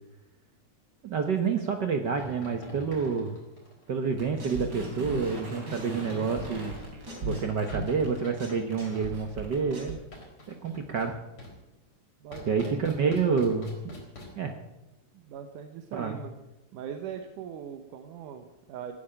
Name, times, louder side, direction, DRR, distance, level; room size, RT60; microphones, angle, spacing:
voice 1, 1.0-3.4 3.9-6.7 7.2-10.0 10.5-11.2 12.5-13.7 14.4-14.5 15.9-16.2, right 5 dB, 65° right, 5 dB, 1.0 m, -28 dB
sound 1, 2.1-4.1 4.8-9.3 10.1-11.1 11.4-11.5 12.3-14.3, left 1 dB, 40° left, 5.3 m, -46 dB
sound 2, 4.2-9.9, right 1 dB, 35° right, 4.0 m, -38 dB
voice 2, 12.2-12.8 15.1-16.3 16.7-18.9, right 8 dB, 85° right, 6 dB, 2.6 m, -40 dB
16.0 x 9.7 x 8.8 m, 0.98 s
omnidirectional pair, 3.5 m